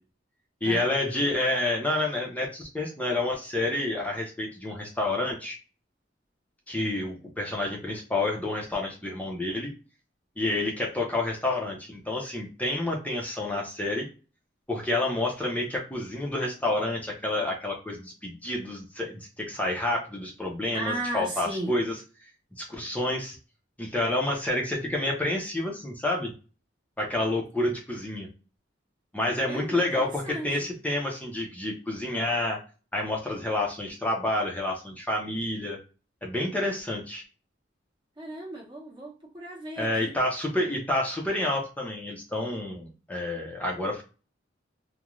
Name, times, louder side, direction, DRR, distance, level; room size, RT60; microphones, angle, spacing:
voice 1, 0.6-5.5 6.7-9.7 10.4-14.1 14.7-22.0 22.6-23.4 23.8-26.3 27.0-28.3 29.1-32.6 32.9-35.8 36.2-37.2 39.8-44.0, left 1 dB, 10° left, 0.5 m, -29 dB
voice 2, 20.7-21.8 29.5-30.5 38.2-40.1, right 1 dB, 25° right, 0.7 m, -35 dB
2.4 x 2.1 x 3.0 m
head